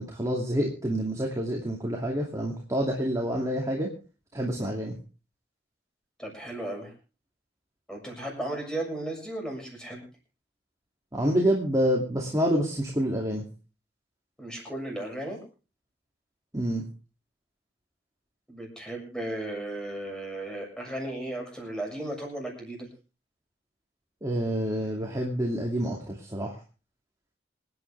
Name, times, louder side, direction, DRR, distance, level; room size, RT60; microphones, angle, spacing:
voice 1, 0.0-3.9 4.3-5.0 11.1-13.4 16.5-16.9 24.2-26.6, equal, 20° right, -1 dB, 2.6 m, -27 dB
voice 2, 6.2-6.9 7.9-10.0 14.4-15.4 18.5-22.9, right 1 dB, 5° left, 0 dB, 6.9 m, -35 dB
27.0 x 9.6 x 3.4 m, 0.34 s
head